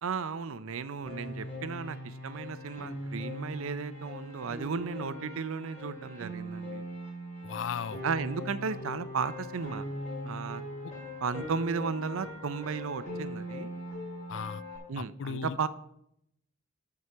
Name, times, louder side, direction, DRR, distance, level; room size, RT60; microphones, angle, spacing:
voice 1, 0.0-6.8 8.0-9.8 10.2-10.6 11.2-13.7 14.9-15.7, right 5 dB, 75° right, 15 dB, 0.5 m, -34 dB
Piano, 1.1-14.8, left 1 dB, 35° left, 2.8 m, -40 dB
voice 2, 7.4-8.0 10.8-10.9 14.3-14.6 15.0-15.6, left 6 dB, 60° left, 19 dB, 0.3 m, -36 dB
9.4 x 4.8 x 6.9 m, 0.77 s
head